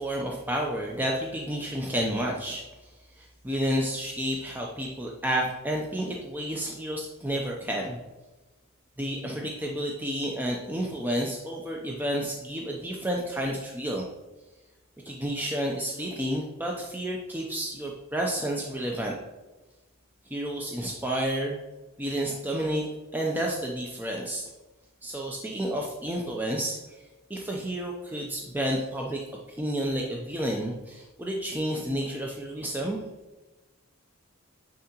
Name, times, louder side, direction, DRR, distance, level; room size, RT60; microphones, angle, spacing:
voice 1, 0.0-8.0 9.0-14.1 15.0-19.1 20.3-21.6 22.0-24.5 25.0-26.8 27.3-33.0, right 1 dB, 10° right, -1 dB, 0.5 m, -30 dB
9.4 x 3.8 x 2.9 m, 1.1 s
head